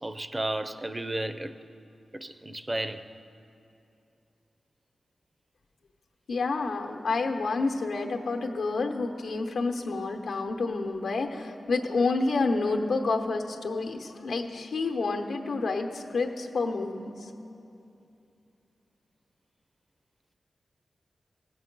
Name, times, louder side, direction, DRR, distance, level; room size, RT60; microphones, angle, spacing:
voice 1, 0.0-1.6 2.1-3.1, right 1 dB, 20° right, 11 dB, 0.4 m, -33 dB
voice 2, 6.3-17.3, left 3 dB, 90° left, 3 dB, 0.9 m, -29 dB
17.0 x 7.7 x 5.3 m, 2.7 s
wide cardioid pair, 85°, 0 cm